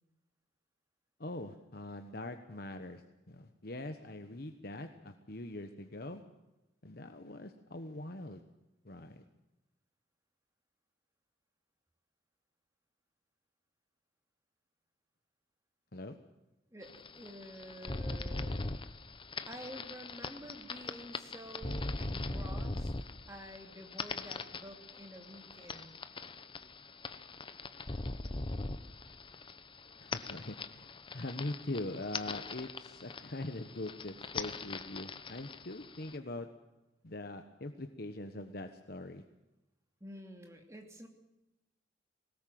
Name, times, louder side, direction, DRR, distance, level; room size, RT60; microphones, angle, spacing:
voice 1, 1.2-6.2 6.8-8.4 8.8-9.2 15.9-16.2 30.0-36.5 37.0-39.2, left 2 dB, 55° left, 7 dB, 1.2 m, -42 dB
voice 2, 16.7-18.6 19.5-22.9 23.3-26.0 40.0-41.1, equal, 15° right, 3 dB, 2.8 m, -49 dB
sound 1, 16.8-36.2, left 3 dB, 25° left, 0.9 m, -41 dB
21.0 x 18.5 x 7.7 m, 0.98 s
head